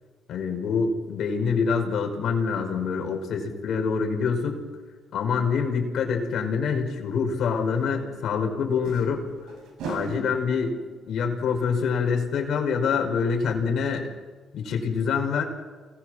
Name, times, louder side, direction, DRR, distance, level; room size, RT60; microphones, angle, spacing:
voice 1, 0.3-4.6 5.1-9.3 9.8-10.8 11.1-14.1 14.5-15.4, left 5 dB, 70° left, 3 dB, 5.3 m, -25 dB
sound 1, 7.3-7.4 8.7-13.2 13.5-13.6 13.9-14.0, right 4 dB, 85° right, 5.9 m, -40 dB
29.0 x 20.5 x 6.5 m, 1.4 s
cardioid pair, 90°, 0 cm